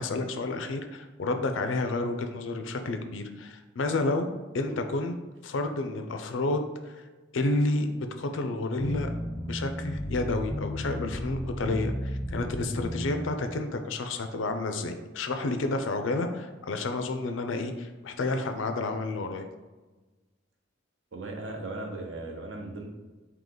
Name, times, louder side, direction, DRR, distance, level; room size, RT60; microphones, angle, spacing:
voice 1, 0.0-4.3 4.5-5.2 5.4-7.0 7.3-9.1 9.4-19.5, left 2 dB, 90° left, 6 dB, 0.5 m, -30 dB
sound 1, 8.8-13.3, equal, 10° left, 0.4 m, -34 dB
voice 2, 21.1-22.9, right 2 dB, 75° right, 2 dB, 0.8 m, -37 dB
3.8 x 2.9 x 3.7 m, 1.2 s
head